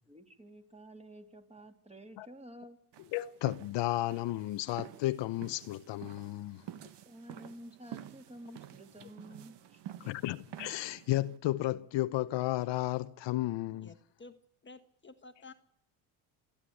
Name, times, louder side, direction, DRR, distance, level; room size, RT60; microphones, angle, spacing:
voice 1, 0.1-2.8 6.8-10.1, right 1 dB, 15° right, 2.6 m, -51 dB
sound 1, 2.9-11.4, right 10 dB, 55° right, 1.5 m, -50 dB
voice 2, 3.1-6.6 10.0-13.9, left 16 dB, 60° left, 0.8 m, -33 dB
voice 3, 13.8-15.5, left 3 dB, 20° left, 1.4 m, -53 dB
27.0 x 9.8 x 9.8 m
supercardioid pair, 85°, 50 cm